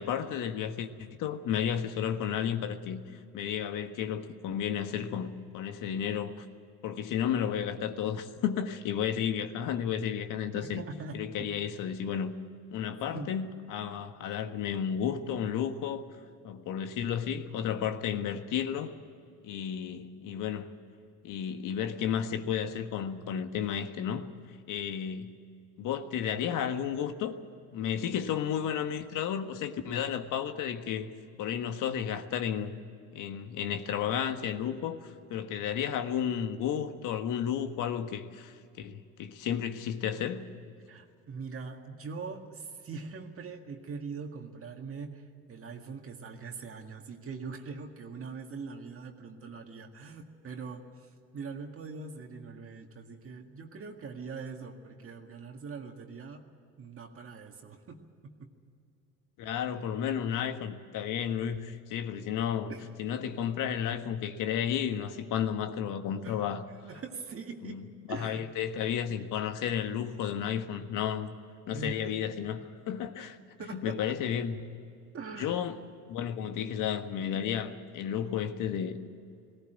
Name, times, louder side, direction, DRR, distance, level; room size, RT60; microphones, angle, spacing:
voice 1, 0.0-3.0 3.3-6.4 6.8-10.8 11.1-12.3 12.7-16.0 16.4-18.9 19.4-20.7 21.2-24.2 24.7-25.4 25.8-27.3 27.7-31.1 31.4-32.7 33.1-40.4 59.4-62.7 63.0-66.6 67.6-71.3 71.7-73.4 73.7-74.7 75.4-75.8 76.1-79.0, left 8 dB, 75° left, 1.5 m, -32 dB
voice 2, 10.5-11.5 13.1-13.3 40.9-56.4 56.8-58.5 62.7-62.9 66.2-67.8 68.1-68.4 71.7-72.2 73.6-74.2 75.1-75.6, right 4 dB, 45° right, 2.0 m, -42 dB
18.5 x 17.5 x 9.2 m
cardioid pair, 100°, 32 cm